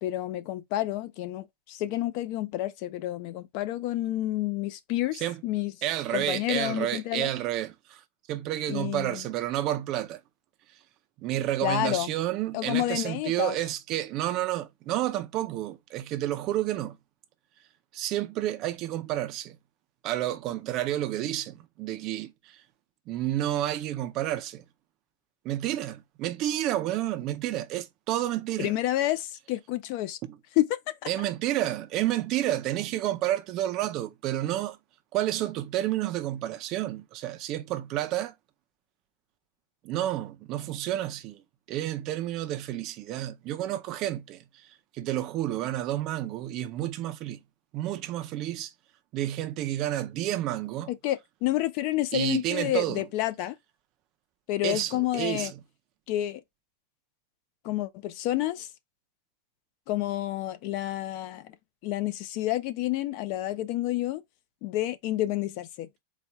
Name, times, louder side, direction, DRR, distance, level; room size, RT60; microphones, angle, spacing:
voice 1, 0.0-5.7 6.1-7.3 8.7-9.2 11.6-12.1 12.5-13.6 28.6-30.2 30.6-30.9 50.9-53.6 54.5-55.5 56.1-56.4 57.6-58.7 59.9-61.5 61.8-64.2 64.6-65.9, left 15 dB, 40° left, 0.4 m, -29 dB
voice 2, 5.8-8.0 8.3-10.2 11.2-17.0 17.9-19.6 20.0-22.6 23.1-24.6 25.4-28.7 30.3-30.4 31.1-34.8 35.1-38.3 39.8-41.4 41.7-44.7 44.9-47.4 47.7-48.7 49.1-50.9 52.1-53.0 54.6-55.6, right 13 dB, 30° right, 0.5 m, -30 dB
4.1 x 2.3 x 4.4 m
supercardioid pair, 170°, 0 cm